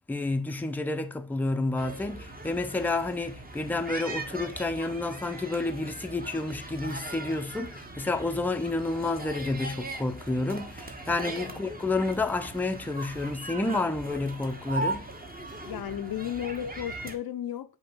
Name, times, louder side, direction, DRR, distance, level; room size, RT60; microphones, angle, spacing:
voice 1, 0.1-15.1, left 2 dB, 5° left, 0.4 m, -30 dB
sound 1, 1.8-17.2, right 2 dB, 25° right, 0.9 m, -39 dB
voice 2, 15.7-17.8, left 11 dB, 70° left, 0.5 m, -34 dB
5.3 x 2.2 x 4.5 m
wide cardioid pair, 65°, 38 cm